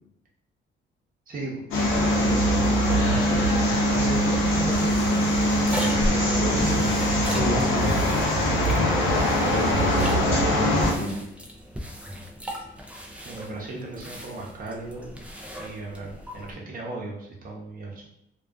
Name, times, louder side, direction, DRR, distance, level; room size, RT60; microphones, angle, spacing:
voice 1, 1.3-1.8 2.2-5.2 6.0-6.8 13.2-15.1 15.6-18.1, right 2 dB, 45° right, -2 dB, 0.8 m, -36 dB
sound 1, 1.7-10.9, equal, 90° left, 0.6 m, -22 dB
sound 2, 4.5-16.5, equal, 5° right, 0.3 m, -37 dB
voice 2, 6.4-6.9 7.3-7.9 9.3-11.2, left 2 dB, 45° left, -3 dB, 0.9 m, -31 dB
2.3 x 2.3 x 2.3 m, 0.79 s
cardioid pair, 90°, 20 cm